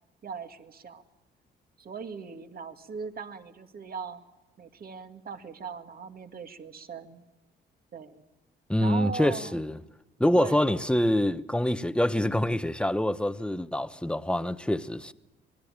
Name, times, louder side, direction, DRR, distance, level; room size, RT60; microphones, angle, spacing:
voice 1, 0.2-1.0 1.8-4.2 4.6-7.2 7.9-8.2 8.8-9.6 10.4-10.8, right 5 dB, 50° right, 2.1 m, -39 dB
voice 2, 8.7-9.8 10.2-15.1, left 1 dB, 5° left, 1.1 m, -26 dB
26.5 x 20.5 x 8.8 m
cardioid pair, 90°, 20 cm